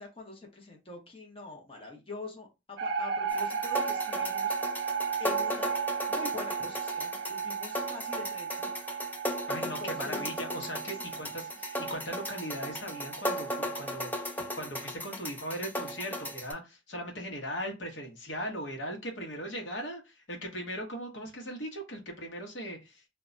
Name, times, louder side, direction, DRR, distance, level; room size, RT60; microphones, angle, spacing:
voice 1, 0.0-4.6 5.2-5.7 6.1-8.7 9.6-10.3 11.0-11.1, left 2 dB, 30° left, 0 dB, 0.8 m, -44 dB
sound 1, 2.8-13.9, right 6 dB, 65° right, 0.3 m, -35 dB
sound 2, 3.3-16.5, equal, 10° left, 0.4 m, -36 dB
voice 2, 9.5-23.1, equal, 70° left, 2 dB, 0.9 m, -39 dB
2.2 x 2.1 x 3.7 m, 0.25 s
head